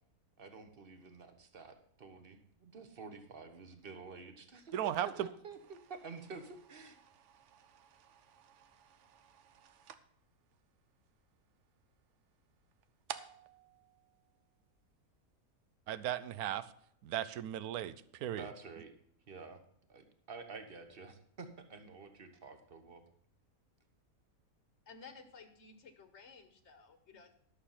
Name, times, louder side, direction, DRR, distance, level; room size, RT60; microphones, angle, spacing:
voice 1, 0.4-7.0 18.3-18.9 19.3-19.6 19.9-23.0, right 4 dB, 40° right, 7 dB, 1.3 m, -50 dB
sound 1, 4.6-15.0, right 9 dB, 60° right, 0.9 m, -55 dB
voice 2, 4.7-5.3 15.9-16.7 17.0-18.5, right 11 dB, 85° right, 16 dB, 1.1 m, -36 dB
voice 3, 24.9-27.3, left 5 dB, 50° left, 8 dB, 1.4 m, -55 dB
11.5 x 6.7 x 5.6 m, 0.67 s
omnidirectional pair, 1.6 m